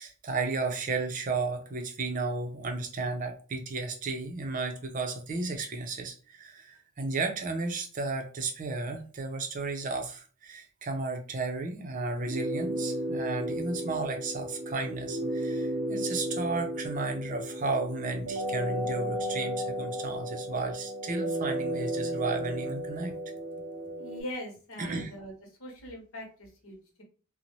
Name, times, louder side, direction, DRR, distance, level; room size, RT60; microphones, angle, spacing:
voice 1, 0.0-23.1 24.8-25.1, right 3 dB, 40° right, 4 dB, 0.5 m, -33 dB
sound 1, 12.2-24.2, right 1 dB, 85° right, 0.6 m, -34 dB
voice 2, 24.0-25.3 25.6-27.0, left 1 dB, 75° left, 1 dB, 0.9 m, -41 dB
2.7 x 2.1 x 3.0 m, 0.38 s
head